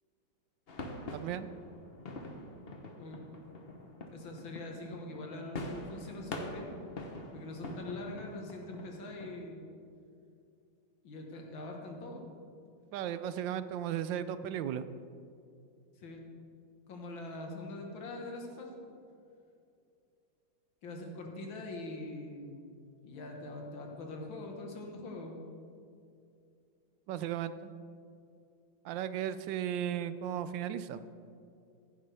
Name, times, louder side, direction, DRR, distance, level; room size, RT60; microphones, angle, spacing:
sound 1, 0.7-9.3, left 2 dB, 40° left, 0.9 m, -44 dB
voice 1, 1.1-1.5 12.9-14.8 27.1-27.7 28.8-31.0, right 10 dB, 75° right, 13 dB, 1.2 m, -35 dB
voice 2, 3.0-3.3 4.1-6.7 7.3-9.7 11.0-12.3 16.0-16.2 16.9-18.9 20.8-22.7 23.0-25.4, left 2 dB, 80° left, 1 dB, 2.2 m, -43 dB
15.0 x 10.5 x 3.4 m, 2.5 s
omnidirectional pair, 2.1 m